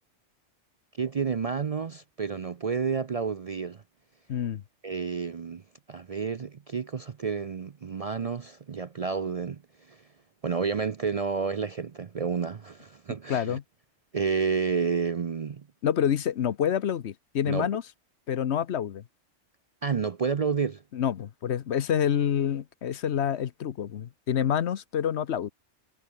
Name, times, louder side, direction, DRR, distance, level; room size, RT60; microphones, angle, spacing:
voice 1, 1.0-3.8 4.8-5.6 5.9-9.6 9.9-10.0 10.4-13.6 14.1-15.7 17.5-17.7 19.8-20.8, right 5 dB, 45° right, 0.5 m, -30 dB
voice 2, 4.3-4.6 13.3-13.6 15.8-17.8 18.3-19.0 20.9-25.5, left 9 dB, 70° left, 1.1 m, -27 dB
omnidirectional pair, 1.2 m